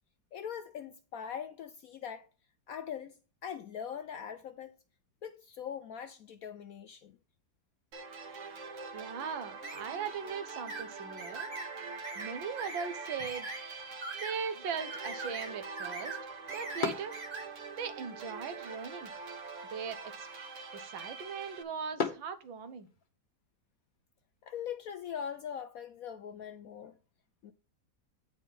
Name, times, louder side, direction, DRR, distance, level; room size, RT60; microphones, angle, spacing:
voice 1, 0.3-2.3 2.7-4.8 5.2-7.1 24.4-27.0 27.4-27.5, left 8 dB, 70° left, 0.8 m, -41 dB
sound 1, 7.9-21.6, right 4 dB, 50° right, 1.2 m, -44 dB
voice 2, 8.9-11.5 12.1-13.5 14.1-16.2 16.5-17.2 17.7-19.1 19.7-20.3 20.7-22.9, right 6 dB, 90° right, 1.8 m, -39 dB
sound 2, 9.6-9.8 10.7-10.9 11.2-11.7 12.0-12.3 12.6-12.9 13.2-13.6 14.0-14.4 14.9-15.5 15.8-16.2 16.5-17.4, right 3 dB, 30° right, 1.6 m, -42 dB
sound 3, 13.0-23.1, left 5 dB, 35° left, 0.9 m, -44 dB
9.1 x 4.9 x 5.4 m
omnidirectional pair, 2.0 m